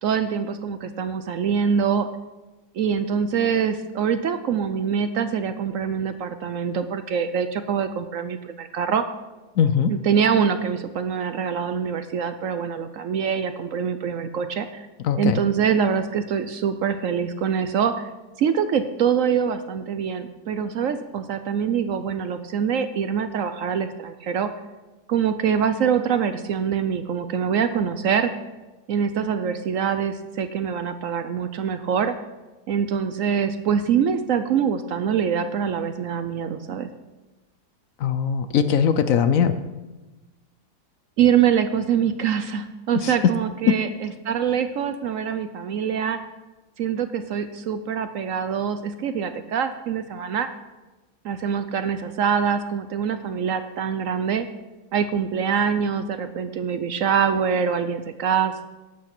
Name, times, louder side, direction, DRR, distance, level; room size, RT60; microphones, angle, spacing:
voice 1, 0.0-2.1 2.7-9.0 9.9-14.9 15.2-18.1 18.4-24.5 25.1-28.3 28.9-32.1 32.7-36.9 41.2-46.2 46.8-50.5 51.2-54.5 54.9-58.6, right 7 dB, 65° right, 10 dB, 0.9 m, -24 dB
voice 2, 9.6-9.9 15.0-15.4 38.0-39.6 42.9-43.3 43.7-43.8, left 8 dB, 65° left, 11 dB, 0.9 m, -20 dB
12.5 x 8.6 x 6.0 m, 1.1 s
omnidirectional pair, 1.8 m